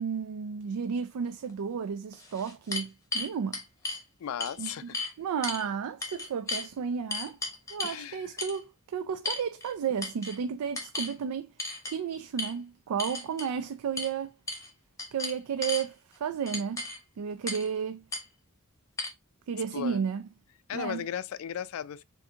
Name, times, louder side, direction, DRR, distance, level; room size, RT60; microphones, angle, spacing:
voice 1, 0.0-3.6 4.6-4.7 5.2-7.4 7.7-11.5 11.9-14.3 15.1-16.9 17.2-18.0 19.5-20.2 20.7-21.0, right 7 dB, 85° right, 0.4 m, -33 dB
sound 1, 1.5-1.6 2.1-4.0 4.4-5.1 5.4-5.6 6.0-6.7 7.1-8.0 8.4-8.6 9.2-9.7 10.0-10.4 10.7-11.1 11.6-11.9 12.4-12.5 13.0-13.5 14.0-14.1 14.5-14.7 15.0-15.8 16.5-17.0 17.5-17.7 18.1-18.2 19.0-19.1, left 3 dB, 15° left, 1.0 m, -35 dB
voice 2, 4.2-5.0 7.8-8.3 19.7-20.0 20.7-22.0, left 9 dB, 65° left, 0.3 m, -36 dB
6.7 x 2.6 x 2.7 m
head